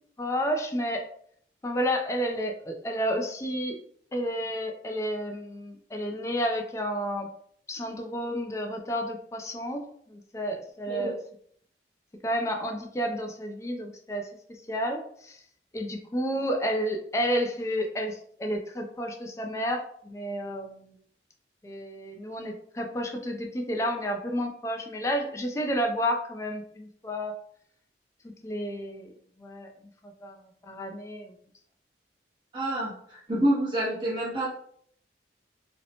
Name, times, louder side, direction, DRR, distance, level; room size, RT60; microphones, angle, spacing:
voice 1, 0.2-1.0 1.6-3.8 4.1-7.3 7.7-11.2 12.2-15.4 15.7-21.0 21.6-27.4 28.2-29.7 30.0-31.3, equal, 15° left, 3 dB, 0.3 m, -31 dB
voice 2, 32.5-34.5, right 1 dB, 25° right, -7 dB, 0.7 m, -27 dB
2.7 x 2.1 x 2.7 m, 0.63 s
head